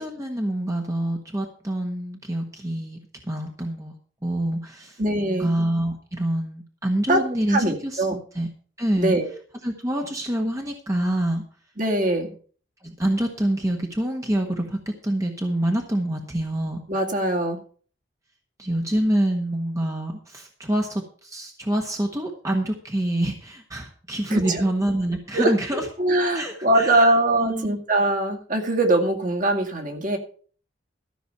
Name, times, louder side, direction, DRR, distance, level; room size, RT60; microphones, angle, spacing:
voice 1, 0.0-3.9 4.2-8.1 8.3-8.5 8.8-9.2 9.6-11.4 12.8-16.8 18.6-25.8 26.3-27.7, right 1 dB, 15° right, 2 dB, 1.3 m, -26 dB
voice 2, 5.0-5.5 7.1-7.2 7.5-8.2 9.0-9.3 11.8-12.3 16.9-17.6 24.3-24.6 25.3-30.2, right 1 dB, 40° right, 3 dB, 2.2 m, -22 dB
13.5 x 6.1 x 6.8 m, 0.44 s
head